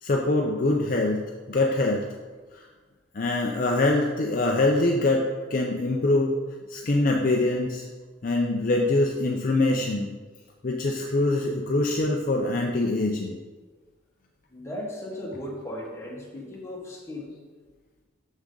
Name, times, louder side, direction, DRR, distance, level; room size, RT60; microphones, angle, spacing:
voice 1, 0.0-1.2 1.5-2.0 2.5-2.6 3.1-6.3 6.7-7.8 8.2-10.1 10.6-13.4, left 2 dB, 40° left, 0 dB, 0.5 m, -24 dB
voice 2, 14.5-17.3, left 1 dB, 15° left, -4 dB, 1.3 m, -36 dB
6.4 x 6.2 x 3.8 m, 1.4 s
head